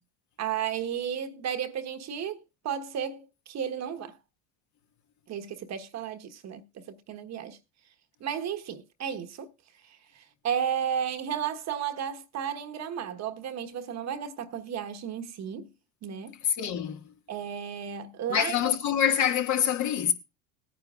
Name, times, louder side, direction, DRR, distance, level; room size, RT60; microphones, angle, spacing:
voice 1, 0.4-2.4 2.6-4.2 5.3-7.6 8.2-9.5 9.8-15.7 16.0-16.4 17.3-18.5, right 8 dB, 45° right, 1.3 m, -33 dB
voice 2, 16.4-17.0 18.3-20.1, left 9 dB, 50° left, 1.9 m, -25 dB
19.5 x 9.5 x 2.4 m
supercardioid pair, 95°, 38 cm